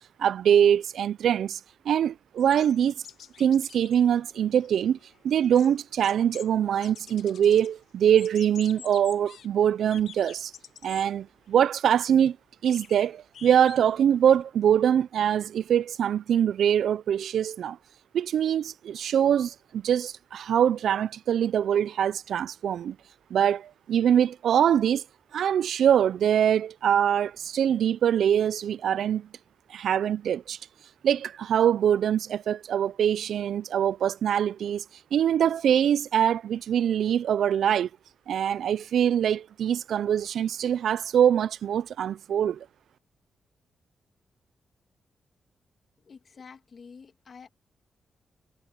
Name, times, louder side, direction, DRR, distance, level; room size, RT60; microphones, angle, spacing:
voice 1, 0.2-1.6 1.9-2.9 3.4-5.0 5.2-10.5 10.8-12.4 12.6-17.8 18.1-23.0 23.3-25.0 25.3-29.3 29.7-30.6 31.0-34.8 35.1-37.9 38.3-42.7, right 9 dB, 75° right, 0.3 m, -23 dB
sound 1, 2.4-4.0 4.3-4.4 4.6-6.5 6.8-7.7 8.1-9.5 9.9-11.1 11.5-11.6 12.6-14.4, left 8 dB, 70° left, 0.7 m, -48 dB
voice 2, 46.0-47.5, left 5 dB, 40° left, 2.4 m, -48 dB
wide cardioid pair, 170°, 0 cm